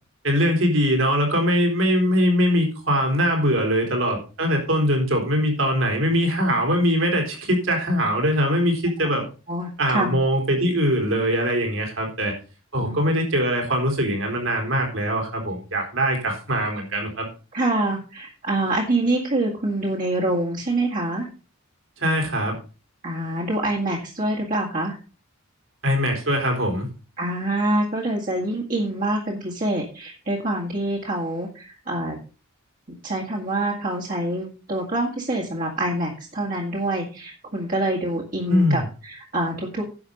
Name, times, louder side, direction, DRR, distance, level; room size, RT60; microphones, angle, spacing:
voice 1, 0.2-9.2 9.8-12.3 12.7-17.3 22.0-22.6 25.8-26.9 38.5-38.8, equal, 65° right, 2 dB, 4.3 m, -22 dB
voice 2, 9.5-10.1 12.8-13.0 17.5-21.3 23.0-25.0 27.2-32.2 33.0-39.9, right 1 dB, 40° right, -4 dB, 2.1 m, -26 dB
11.0 x 7.3 x 5.3 m, 0.35 s
head